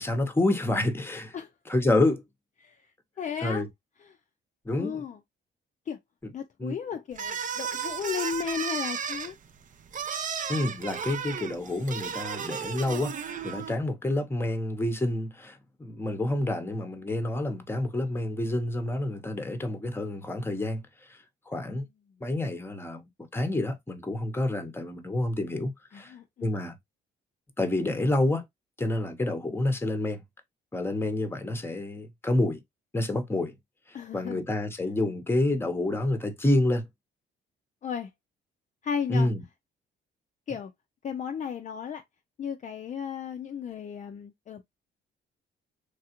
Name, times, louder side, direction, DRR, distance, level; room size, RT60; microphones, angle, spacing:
voice 1, 0.0-1.4 1.7-2.2 3.4-3.7 4.6-5.0 6.6-6.7 10.5-20.8 21.1-21.2 21.5-21.9 22.2-26.1 26.4-26.8 27.6-28.4 28.8-30.2 30.7-32.6 32.9-33.5 34.1-36.9 39.1-39.4, left 1 dB, 10° left, 0.8 m, -28 dB
voice 2, 3.2-3.7 4.0-4.2 4.8-5.2 5.9-6.0 6.3-9.3 25.9-26.5 33.9-34.4 37.8-38.1 38.8-39.3 40.5-40.7 41.0-42.0 42.4-44.6, left 7 dB, 40° left, 0.4 m, -34 dB
sound 1, 7.1-13.8, right 7 dB, 40° right, 0.5 m, -34 dB
3.3 x 2.4 x 2.8 m
cardioid pair, 90°, 20 cm